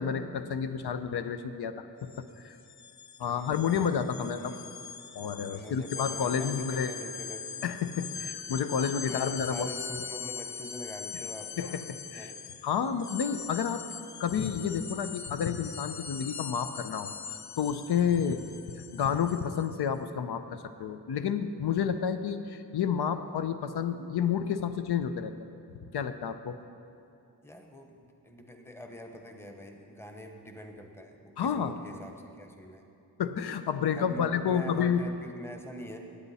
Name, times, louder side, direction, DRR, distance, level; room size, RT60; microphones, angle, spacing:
voice 1, 0.0-2.6 3.2-4.5 5.1-6.9 7.6-9.7 11.6-12.3 12.6-13.9 14.2-18.4 18.8-25.3 25.9-26.6 31.4-31.8 33.2-35.1, left 7 dB, 90° left, 9 dB, 0.7 m, -30 dB
sound 1, 2.0-2.2 2.5-19.7, left 6 dB, 50° left, 0.5 m, -41 dB
voice 2, 3.2-4.7 5.5-7.5 8.2-8.3 9.0-11.6 12.1-12.4 18.2-18.4 27.4-32.9 33.9-36.0, equal, 5° left, 3 dB, 0.9 m, -45 dB
18.0 x 8.9 x 4.2 m, 2.6 s
wide cardioid pair, 150°, 38 cm